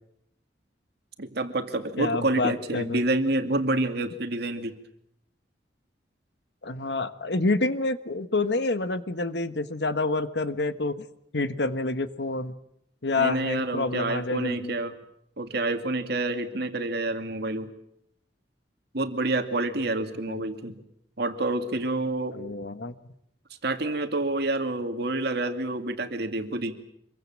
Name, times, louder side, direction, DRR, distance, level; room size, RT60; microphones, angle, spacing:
voice 1, 1.2-4.7 13.2-14.9 15.4-17.7 18.9-20.8 21.2-22.4 23.6-26.7, right 2 dB, 65° right, 7 dB, 2.3 m, -28 dB
voice 2, 2.0-3.0 6.6-11.0 11.3-12.5 13.0-14.7 20.3-20.4 22.3-22.9, left 2 dB, 70° left, 11 dB, 1.4 m, -28 dB
26.0 x 23.0 x 7.6 m, 0.75 s
head